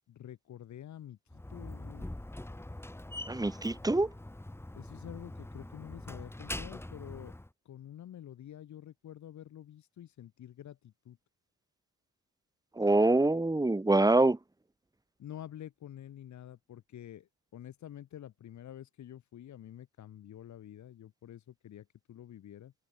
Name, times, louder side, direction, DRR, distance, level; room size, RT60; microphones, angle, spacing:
voice 1, 0.1-2.1 4.7-7.3 7.6-11.2 15.2-22.7, left 11 dB, 70° left, 4.8 m, -48 dB
Slam, 1.3-7.5, left 1 dB, 10° left, 3.0 m, -43 dB
voice 2, 3.3-4.1 12.8-14.4, right 2 dB, 10° right, 2.0 m, -25 dB
cardioid pair, 90°, 30 cm